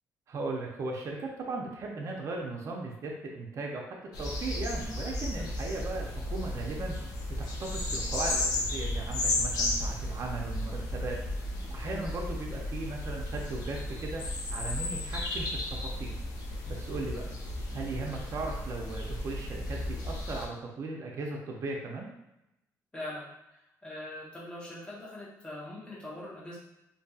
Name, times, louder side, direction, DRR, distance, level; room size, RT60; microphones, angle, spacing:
voice 1, 0.3-3.8 4.2-7.0 7.4-11.2 11.7-14.2 14.5-16.1 16.7-17.3 17.7-22.1, right 3 dB, 50° right, -1 dB, 0.5 m, -37 dB
sound 1, 4.1-20.5, left 1 dB, 75° left, 0.5 m, -34 dB
voice 2, 22.9-26.6, left 1 dB, 15° left, -6 dB, 1.0 m, -42 dB
2.6 x 2.6 x 2.3 m, 0.88 s
cardioid pair, 100°, 6 cm